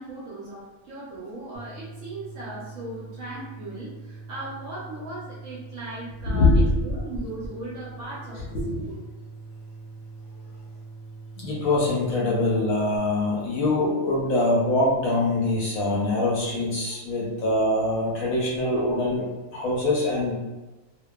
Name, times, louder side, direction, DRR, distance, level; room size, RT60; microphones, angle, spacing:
voice 1, 0.0-8.9, right 2 dB, 60° right, -7 dB, 0.8 m, -38 dB
sound 1, 1.5-13.0, right 3 dB, 90° left, 1.3 m, -43 dB
voice 2, 6.2-7.0 8.3-8.8 11.4-19.2 19.5-20.3, left 2 dB, 65° left, -5 dB, 1.0 m, -23 dB
2.8 x 2.1 x 2.2 m, 1.2 s
omnidirectional pair, 1.7 m